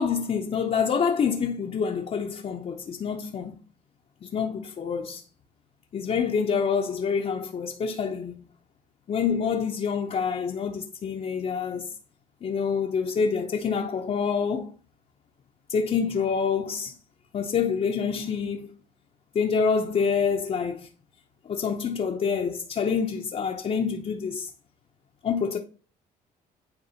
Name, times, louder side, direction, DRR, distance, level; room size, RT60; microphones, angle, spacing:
voice 1, 0.0-3.5 4.2-5.2 5.9-8.4 9.1-11.9 12.4-14.7 15.7-16.9 17.3-18.7 19.3-20.9 21.4-24.5 25.2-25.6, left 6 dB, 40° left, 0.7 m, -27 dB
9.6 x 3.6 x 2.8 m
cardioid pair, 95°, 17 cm